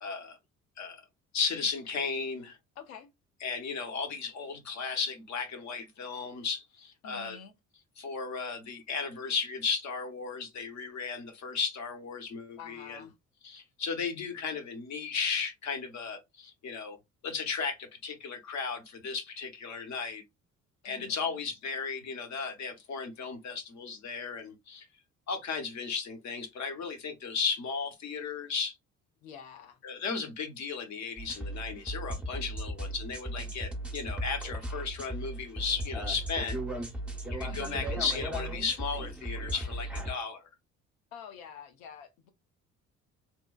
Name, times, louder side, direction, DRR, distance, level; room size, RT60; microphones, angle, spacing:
voice 1, 0.0-0.4 0.8-1.0 1.3-2.6 3.4-7.4 8.0-13.0 13.4-17.0 17.2-20.2 20.8-24.9 25.3-28.8 29.8-36.6 37.3-40.4, left 5 dB, 45° left, 0.9 m, -35 dB
voice 2, 2.8-3.1 7.0-7.6 12.6-13.2 20.8-21.4 29.2-29.8 37.5-38.0 41.1-42.3, left 7 dB, 70° left, 0.7 m, -48 dB
sound 1, 31.2-40.2, right 1 dB, 5° right, 0.7 m, -36 dB
3.0 x 2.1 x 2.3 m
figure-of-eight pair, 50°, 41 cm